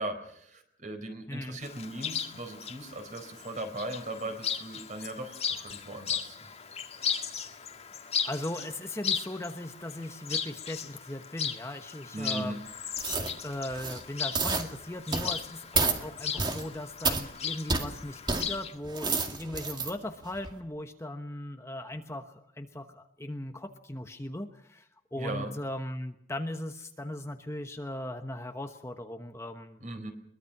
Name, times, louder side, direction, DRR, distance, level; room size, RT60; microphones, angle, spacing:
voice 1, 0.0-6.5 6.8-7.2 12.1-12.6 25.2-25.6 29.8-30.1, right 1 dB, 40° right, 6 dB, 4.3 m, -38 dB
voice 2, 1.3-1.6 7.5-7.6 8.2-12.6 13.4-29.8, left 1 dB, 15° left, 6 dB, 1.1 m, -38 dB
Chirp tweet, 1.6-18.7, left 7 dB, 35° left, 1.8 m, -37 dB
sound 1, 13.0-13.3 13.7-14.0 14.3-14.7 15.1-15.4 15.7-16.0 16.4-16.6 17.0-17.2 17.7-17.9 18.3-18.4 18.8-19.9 20.4-20.5, right 4 dB, 25° right, 2.1 m, -29 dB
22.5 x 22.5 x 6.0 m, 0.74 s
head